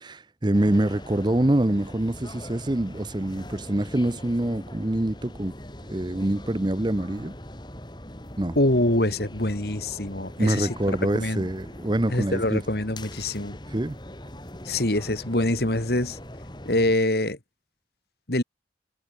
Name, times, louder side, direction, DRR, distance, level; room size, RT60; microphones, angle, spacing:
voice 1, 0.0-5.5 5.9-7.3 8.4-8.6 10.4-12.6 13.7-14.0, right 1 dB, 25° right, 0.7 m, -25 dB
sound 1, 0.5-17.0, left 1 dB, 25° left, 3.4 m, -41 dB
voice 2, 8.6-10.7 11.1-11.5 12.1-13.6 14.6-16.2 16.6-17.4 18.3-18.4, left 1 dB, 55° left, 2.5 m, -24 dB
head